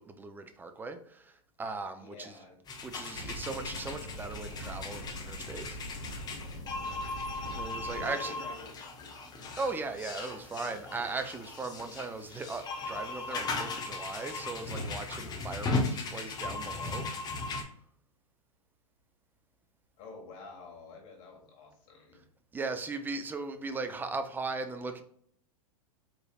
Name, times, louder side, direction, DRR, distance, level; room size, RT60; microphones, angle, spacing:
voice 1, 0.0-2.4 2.8-5.8 7.6-8.4 9.6-17.1 22.5-25.0, right 3 dB, 10° right, 0.3 m, -38 dB
voice 2, 2.0-2.6 6.8-7.1 7.9-9.6 20.0-22.2, left 3 dB, 45° left, 1.3 m, -49 dB
sound 1, 2.7-17.6, left 3 dB, 20° left, 0.7 m, -37 dB
sound 2, 3.1-8.1, equal, 75° left, 1.1 m, -43 dB
4.0 x 3.2 x 2.3 m
hypercardioid pair, 115°, 19 cm